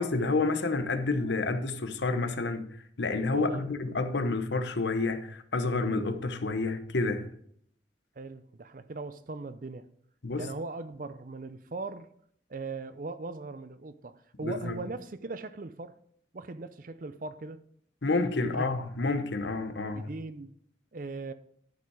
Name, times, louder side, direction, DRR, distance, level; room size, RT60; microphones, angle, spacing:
voice 1, 0.0-2.7 3.0-7.3 10.2-10.5 14.4-14.8 18.0-20.1, left 3 dB, 70° left, 0.9 m, -29 dB
voice 2, 3.3-3.7 8.2-9.9 10.4-12.1 12.5-16.0 16.3-17.6 18.4-18.8 19.9-20.6 20.9-21.3, right 3 dB, 45° right, 0.5 m, -39 dB
12.0 x 5.4 x 4.7 m
head